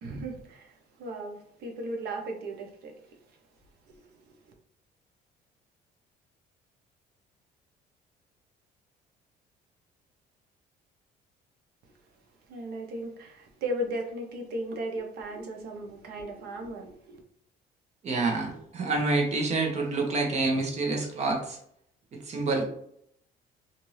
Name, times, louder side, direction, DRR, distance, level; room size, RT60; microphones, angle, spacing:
voice 1, 0.0-3.2 3.9-4.5 12.5-17.2, right 1 dB, 70° right, 0.9 m, -36 dB
voice 2, 18.0-21.6 22.1-22.6, right 3 dB, 40° right, 1.0 m, -27 dB
2.7 x 2.6 x 3.1 m
cardioid pair, 110°, 17 cm